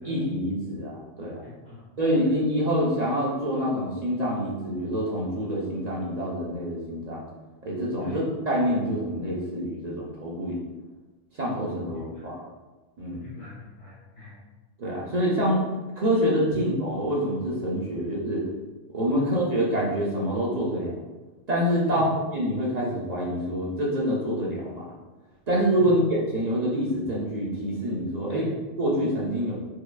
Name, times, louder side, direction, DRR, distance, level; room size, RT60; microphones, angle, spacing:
voice 1, 0.1-1.4 2.0-7.2 7.6-10.6 11.3-12.4 13.0-13.2 14.8-15.6 16.0-18.4 18.9-20.9 21.5-25.0 25.5-28.5 28.8-29.5, equal, 50° right, -5 dB, 0.5 m, -26 dB
voice 2, 1.4-1.9 2.2-2.3 8.0-8.2 12.1-12.2 13.2-14.3 16.5-16.7 19.2-19.3 21.9-22.0 25.8-25.9 28.3-28.5, equal, 55° left, -11 dB, 1.2 m, -41 dB
4.6 x 2.3 x 2.3 m, 1.2 s
omnidirectional pair, 1.3 m